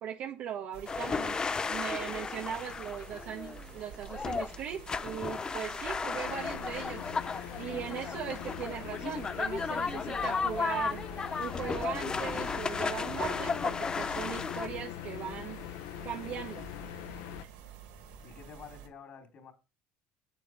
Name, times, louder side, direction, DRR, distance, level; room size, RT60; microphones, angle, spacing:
voice 1, 0.0-1.4 1.7-7.1 7.6-11.0 11.4-15.6 16.0-16.7, right 9 dB, 60° right, 1.5 m, -39 dB
sound 1, 0.7-18.9, right 7 dB, 85° right, 3.5 m, -50 dB
sound 2, 0.9-14.7, left 4 dB, 25° left, 0.6 m, -34 dB
sound 3, 6.3-17.4, left 14 dB, 85° left, 0.8 m, -42 dB
voice 2, 18.2-19.5, left 6 dB, 45° left, 3.7 m, -49 dB
8.3 x 7.9 x 4.6 m
supercardioid pair, 110°, 3 cm